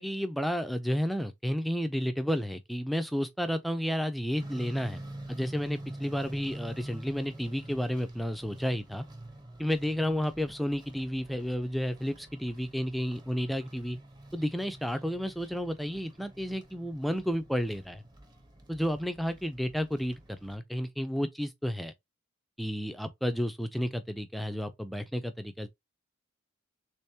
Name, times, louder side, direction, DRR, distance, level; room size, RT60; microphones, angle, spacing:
voice 1, 0.0-5.0 5.3-9.0 9.6-14.0 14.3-18.0 18.7-21.9 22.6-25.7, equal, ahead, 0.3 m, -31 dB
sound 1, 4.4-20.5, right 1 dB, 20° right, 0.7 m, -47 dB
3.5 x 3.3 x 2.7 m
head